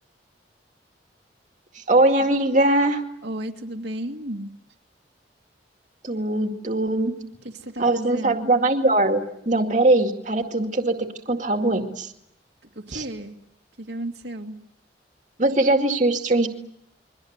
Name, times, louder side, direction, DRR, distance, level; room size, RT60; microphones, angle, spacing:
voice 1, 1.7-3.0 6.0-7.1 7.8-12.1 12.9-13.0 15.4-16.5, right 2 dB, 45° right, 4 dB, 2.3 m, -21 dB
voice 2, 3.2-4.5 7.4-8.4 12.7-13.4 13.8-14.6, right 1 dB, 70° right, 2 dB, 2.3 m, -33 dB
29.0 x 23.5 x 8.1 m, 0.76 s
head